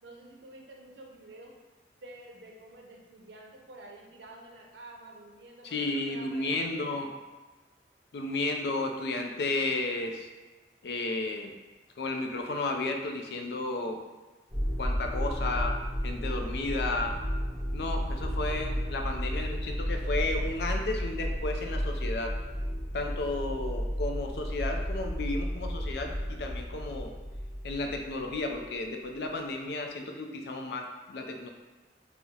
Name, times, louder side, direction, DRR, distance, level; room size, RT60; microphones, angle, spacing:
voice 1, 0.0-1.5 2.0-7.0, right 2 dB, 80° right, 0 dB, 0.6 m, -49 dB
voice 2, 5.6-7.1 8.1-10.3 10.8-11.5 12.0-14.0 14.8-15.8 16.0-17.2 17.7-22.4 22.9-27.1 27.6-31.5, left 2 dB, 65° left, 3 dB, 0.4 m, -33 dB
sound 1, 14.5-28.7, equal, 5° right, 0.6 m, -33 dB
2.8 x 2.0 x 3.7 m, 1.3 s
head